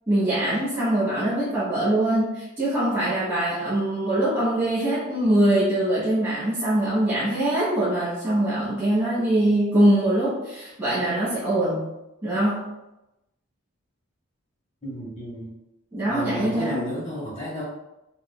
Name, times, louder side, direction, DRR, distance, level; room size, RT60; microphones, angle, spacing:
voice 1, 0.1-11.9 12.2-12.7 15.9-16.8, right 1 dB, 10° right, -12 dB, 1.3 m, -23 dB
voice 2, 14.8-15.5 16.1-17.6, equal, 25° left, -10 dB, 1.1 m, -32 dB
5.3 x 2.7 x 2.2 m, 0.93 s
head